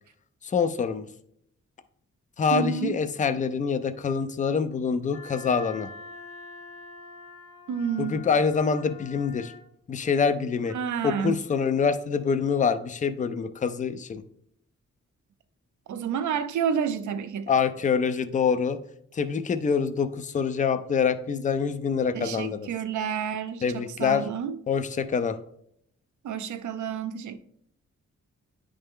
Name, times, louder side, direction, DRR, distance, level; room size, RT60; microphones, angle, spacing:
voice 1, 0.4-1.1 2.4-5.9 8.0-9.5 9.9-10.7 11.0-14.2 17.5-18.8 19.1-22.7 23.6-24.2 24.7-25.4, left 6 dB, 25° left, 0.4 m, -25 dB
voice 2, 2.5-3.0 7.7-8.2 10.7-11.4 15.9-17.5 22.1-24.6 26.2-27.4, right 7 dB, 80° right, 0.5 m, -29 dB
Wind instrument woodwind instrument, 5.1-9.7, left 4 dB, 55° left, 1.5 m, -45 dB
9.7 x 3.3 x 3.6 m
wide cardioid pair, 140°, 29 cm